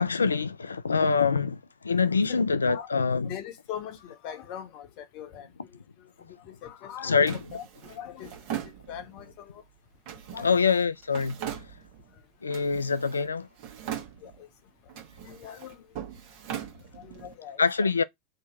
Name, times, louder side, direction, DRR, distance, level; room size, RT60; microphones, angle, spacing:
voice 1, 0.0-3.3 7.0-7.4 10.4-11.4 12.4-13.5 17.6-18.0, left 5 dB, 85° left, 0.3 m, -25 dB
voice 2, 3.2-5.5 6.2-8.6 8.9-9.6 10.3-10.5 14.2-14.5 15.2-16.0 16.9-17.9, left 9 dB, 50° left, 0.9 m, -42 dB
Drawer open or close, 7.3-9.3 10.1-12.1 12.5-13.3 13.6-14.5 14.9-17.3, right 10 dB, 55° right, 1.2 m, -40 dB
3.0 x 2.7 x 4.1 m
figure-of-eight pair, 90°, 0 cm